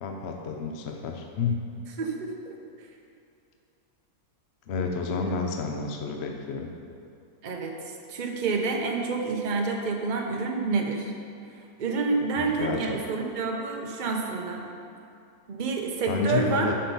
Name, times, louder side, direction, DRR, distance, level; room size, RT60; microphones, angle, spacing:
voice 1, 0.0-1.7 4.7-6.7 12.6-13.0 16.1-16.7, left 4 dB, 55° left, 2 dB, 0.7 m, -30 dB
voice 2, 2.0-2.5 5.2-5.3 7.4-7.7 8.1-11.1 11.8-14.7 15.5-16.7, right 4 dB, 35° right, 1 dB, 0.8 m, -28 dB
7.4 x 6.7 x 5.5 m, 2.5 s
omnidirectional pair, 1.7 m